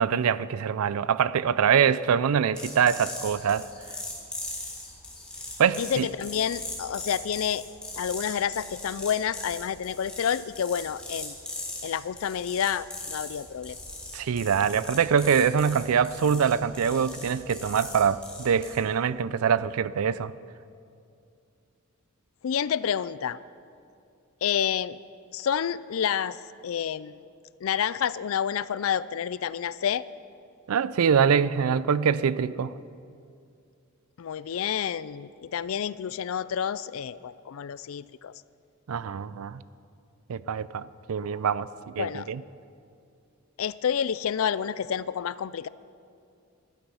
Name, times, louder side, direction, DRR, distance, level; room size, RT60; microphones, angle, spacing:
voice 1, 0.0-3.7 5.6-6.1 14.1-20.3 30.7-32.7 38.9-39.6 40.3-41.7 42.0-42.4, right 7 dB, 85° right, 0.4 m, -24 dB
sound 1, 2.6-18.8, left 2 dB, 5° left, 2.6 m, -40 dB
voice 2, 5.8-7.7 8.0-11.3 11.8-13.8 22.4-23.4 24.4-25.0 25.3-26.4 26.6-27.2 27.6-30.1 34.2-38.3 42.0-42.3 43.6-45.7, left 8 dB, 70° left, 0.4 m, -29 dB
15.0 x 12.0 x 5.6 m
head